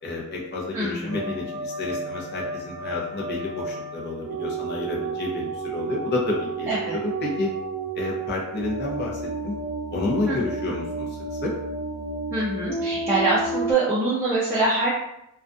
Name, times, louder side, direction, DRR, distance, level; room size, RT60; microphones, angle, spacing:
voice 1, 0.0-6.7 7.0-7.5 7.9-9.5 9.9-11.5, left 3 dB, 45° left, -3 dB, 0.6 m, -30 dB
voice 2, 0.7-1.3 6.7-7.0 10.3-10.4 12.3-14.9, right 2 dB, 10° right, -9 dB, 0.4 m, -24 dB
sound 1, 1.1-13.7, right 3 dB, 85° right, 0.4 m, -32 dB
2.3 x 2.3 x 2.5 m, 0.83 s
head